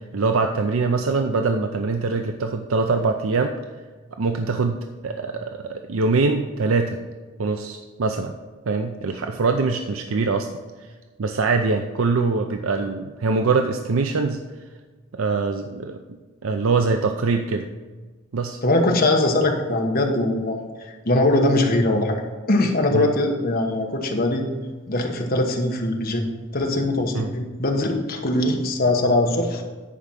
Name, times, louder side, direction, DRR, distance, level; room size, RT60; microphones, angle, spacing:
voice 1, 0.1-3.5 4.2-4.8 5.0-7.0 7.4-8.4 8.7-10.5 11.2-14.4 15.1-16.0 16.4-17.7 18.3-18.6 22.9-23.1 27.1-27.3, right 4 dB, 80° right, 5 dB, 0.5 m, -23 dB
voice 2, 18.6-22.2 22.5-24.4 24.9-26.3 26.5-29.6, left 2 dB, 45° left, 2 dB, 1.2 m, -21 dB
10.0 x 5.0 x 5.7 m, 1.3 s
head